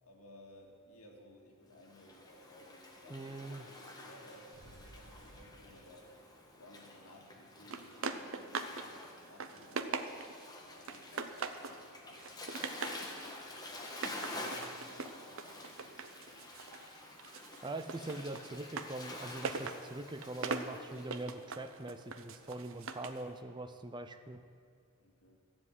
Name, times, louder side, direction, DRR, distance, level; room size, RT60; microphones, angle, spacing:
voice 1, 0.0-6.1 6.6-10.2 10.6-12.5 12.8-16.8 25.0-25.4, left 1 dB, 75° left, 1 dB, 2.2 m, -59 dB
Waves surf, 1.8-21.2, left 2 dB, 20° left, 1.5 m, -49 dB
voice 2, 3.1-3.7 17.6-24.4, right 2 dB, 20° right, 9 dB, 0.6 m, -43 dB
sound 1, 4.5-7.9, right 1 dB, 80° right, 1.8 m, -59 dB
sound 2, 7.7-8.9 9.2-10.4 10.9-11.8 12.2-13.0 13.9-16.9 17.2-23.2, right 4 dB, 60° right, 0.8 m, -41 dB
14.0 x 7.4 x 9.7 m, 2.2 s
head